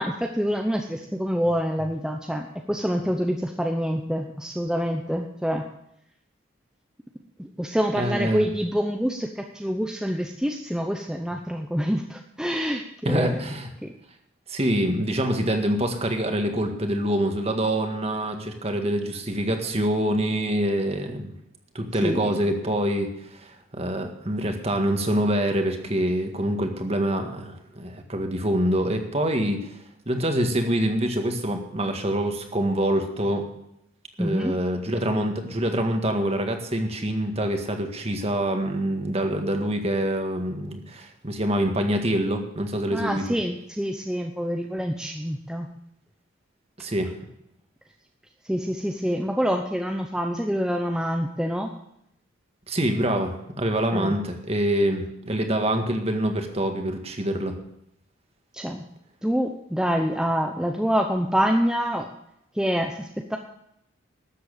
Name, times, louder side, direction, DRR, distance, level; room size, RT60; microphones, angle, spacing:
voice 1, 0.0-5.6 7.4-13.4 13.8-13.9 22.0-22.4 34.2-34.5 42.9-45.7 48.4-51.7 53.9-54.1 58.5-58.8 59.2-62.1 62.5-63.4, equal, 5° right, 3 dB, 0.7 m, -26 dB
voice 2, 8.0-8.5 13.1-13.7 14.5-21.3 21.8-29.7 30.1-33.5 34.2-43.2 46.8-47.2 52.7-57.6, right 1 dB, 30° right, 5 dB, 1.8 m, -25 dB
13.0 x 7.8 x 8.9 m, 0.79 s
head